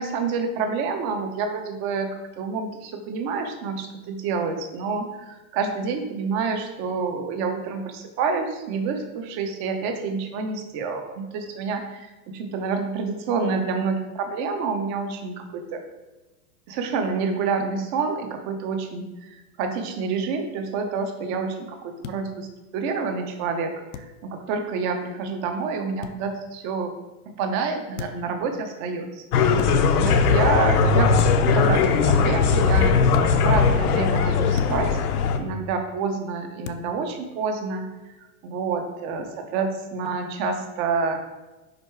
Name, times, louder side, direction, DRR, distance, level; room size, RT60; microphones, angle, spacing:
voice 1, 0.0-15.8 16.7-26.9 27.4-29.6 30.0-31.1 31.5-33.0 33.4-35.0 35.4-38.1 38.4-41.2, right 5 dB, 40° right, 5 dB, 0.9 m, -28 dB
sound 1, 22.0-22.2 23.9-24.1 26.0-26.2 28.0-28.3 29.5-29.7 31.1-31.6 33.1-33.3 34.5-34.8 36.6-36.9, left 8 dB, 55° left, 0.5 m, -32 dB
sound 2, 29.3-35.4, left 5 dB, 80° left, 0.8 m, -19 dB
5.2 x 4.6 x 4.6 m, 1.1 s
supercardioid pair, 145°, 45 cm